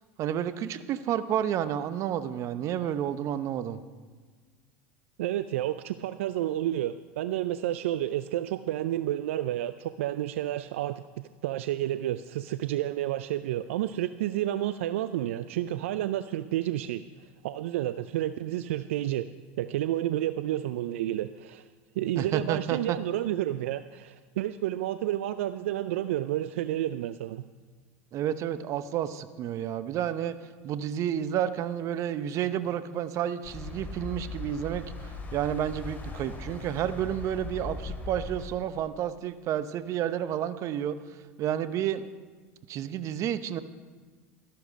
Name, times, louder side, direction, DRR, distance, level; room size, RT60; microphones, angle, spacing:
voice 1, 0.2-3.8 22.2-23.0 28.1-30.4 30.6-42.0 42.7-43.6, right 10 dB, 50° right, 13 dB, 0.8 m, -30 dB
voice 2, 5.2-11.0 11.4-19.3 19.6-21.7 22.0-27.4, right 13 dB, 75° right, 13 dB, 0.4 m, -30 dB
sound 1, 33.4-38.5, left 3 dB, 25° left, 2.5 m, -39 dB
13.0 x 11.5 x 5.1 m, 1.5 s
hypercardioid pair, 90°, 7 cm